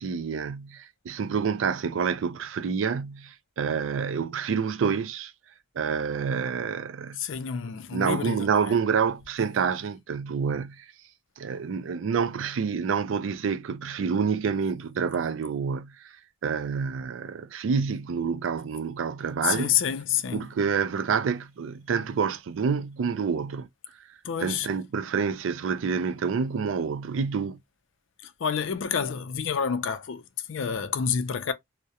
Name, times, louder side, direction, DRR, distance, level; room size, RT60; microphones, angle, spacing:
voice 1, 0.0-5.3 5.8-7.2 7.9-10.9 11.4-16.1 16.4-19.7 20.3-23.7 24.4-27.6, right 6 dB, 80° right, 0.4 m, -28 dB
voice 2, 7.2-8.8 19.4-20.5 24.2-24.7 28.2-30.2 30.5-31.5, left 7 dB, 75° left, 0.4 m, -28 dB
2.3 x 2.1 x 2.7 m
head